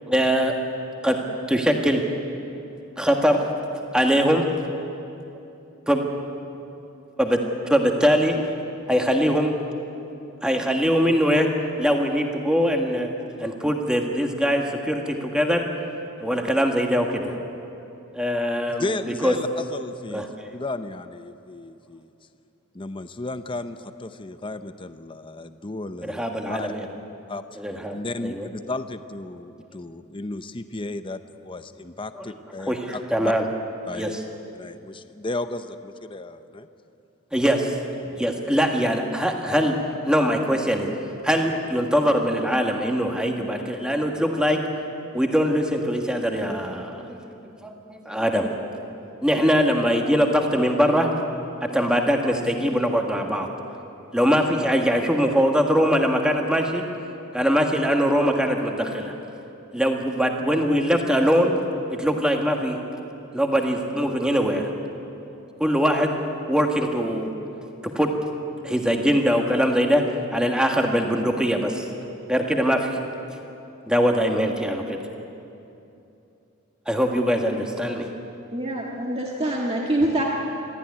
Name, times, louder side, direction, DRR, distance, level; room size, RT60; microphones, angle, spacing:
voice 1, 0.1-0.5 1.0-1.2 1.5-2.0 3.0-3.5 3.9-4.4 5.9-6.0 7.2-8.4 8.9-9.5 10.4-11.5 11.8-13.1 13.4-15.6 16.2-17.3 18.1-18.8 19.2-19.3 20.1-20.3 26.0-26.9 27.6-27.9 28.2-28.5 32.1-32.3 32.7-33.4 33.9-34.2 37.3-37.7 38.2-39.8 40.1-40.9 41.2-44.6 45.1-48.5 49.2-51.1 51.6-53.5 54.1-56.8 57.3-59.1 59.7-61.5 61.9-62.8 63.3-64.7 65.6-66.1 66.5-67.3 67.9-68.1 68.6-70.0 70.3-71.8 72.3-72.9 73.9-75.0 76.9-78.1, equal, 5° right, 2 dB, 1.7 m, -22 dB
voice 2, 18.8-20.2 20.5-22.1 22.7-26.7 27.3-27.4 27.9-33.3 33.9-34.2 34.5-36.7 38.0-38.3, left 2 dB, 25° left, 10 dB, 0.7 m, -34 dB
voice 3, 78.5-80.2, right 1 dB, 30° right, -2 dB, 1.7 m, -25 dB
22.5 x 15.0 x 9.8 m, 2.8 s
head